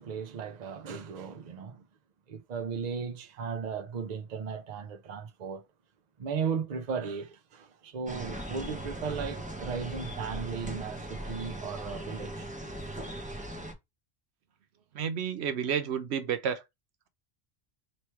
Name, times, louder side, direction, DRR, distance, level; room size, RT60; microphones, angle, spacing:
voice 1, 0.0-1.9 2.3-5.6 6.2-12.5, right 6 dB, 45° right, 0.7 m, -36 dB
sound 1, 8.1-13.7, right 1 dB, 10° right, 0.8 m, -39 dB
voice 2, 14.9-16.6, right 7 dB, 85° right, 0.9 m, -30 dB
3.2 x 3.0 x 4.4 m
omnidirectional pair, 1.1 m